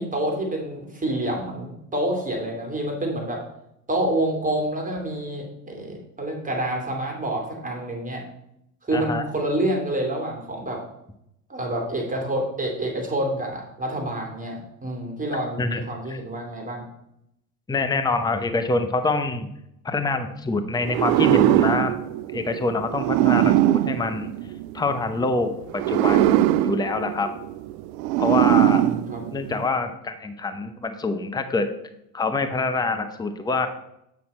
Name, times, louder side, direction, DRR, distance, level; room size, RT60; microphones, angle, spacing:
voice 1, 0.0-3.4 3.9-8.2 8.8-10.8 11.5-16.8 23.3-23.6 28.6-29.2, right 1 dB, 15° right, 1 dB, 2.6 m, -28 dB
voice 2, 8.9-9.2 15.6-15.8 16.1-16.2 17.7-19.5 19.8-22.0 22.3-24.3 24.7-27.3 28.2-28.8 29.3-31.7 32.1-33.7, left 3 dB, 10° left, 8 dB, 0.8 m, -25 dB
sound 1, 20.8-25.0 25.7-29.7, right 15 dB, 60° right, 0.5 m, -21 dB
8.1 x 5.9 x 4.2 m, 0.79 s
hypercardioid pair, 80°, 47 cm